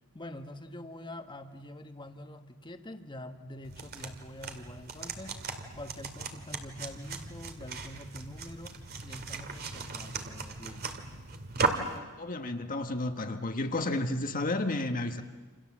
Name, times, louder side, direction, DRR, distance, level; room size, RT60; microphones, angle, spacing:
voice 1, 0.1-5.4 5.8-11.0, left 1 dB, 20° left, 7 dB, 1.4 m, -45 dB
sound 1, 3.6-12.0, right 4 dB, 45° right, 2.2 m, -37 dB
voice 2, 12.2-15.2, left 2 dB, 40° left, 6 dB, 1.4 m, -31 dB
27.5 x 27.5 x 7.4 m, 1.4 s
head